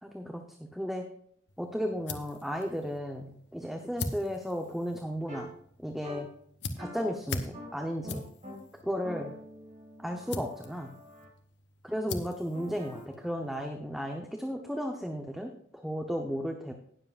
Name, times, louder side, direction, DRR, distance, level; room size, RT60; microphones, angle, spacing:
voice 1, 0.0-1.0 1.6-5.5 5.8-6.3 6.8-8.3 8.8-9.3 10.0-10.9 11.8-16.7, equal, ahead, 3 dB, 0.8 m, -34 dB
sound 1, 1.5-13.6, left 3 dB, 70° left, 1.1 m, -43 dB
sound 2, 5.3-5.4 6.0-6.2 6.8-7.0 7.5-7.7 8.0-8.5 9.0-11.3 12.5-13.0, equal, 40° right, 2.2 m, -45 dB
19.0 x 7.5 x 2.5 m, 0.65 s
head